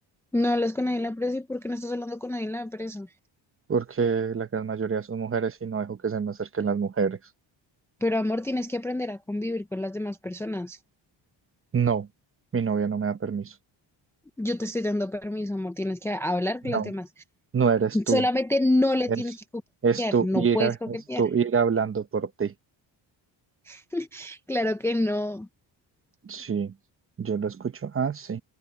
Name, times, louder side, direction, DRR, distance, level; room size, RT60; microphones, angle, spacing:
voice 1, 0.3-3.1 8.0-10.8 14.4-17.1 17.9-19.4 20.0-21.3 23.7-25.5, left 1 dB, 5° left, 0.5 m, -28 dB
voice 2, 3.7-7.2 11.7-12.1 12.5-13.5 16.7-16.9 17.5-18.2 19.1-19.2 19.8-22.5 26.2-26.7 27.2-28.4, right 6 dB, 25° right, 0.9 m, -26 dB
cardioid pair, 150°, 48 cm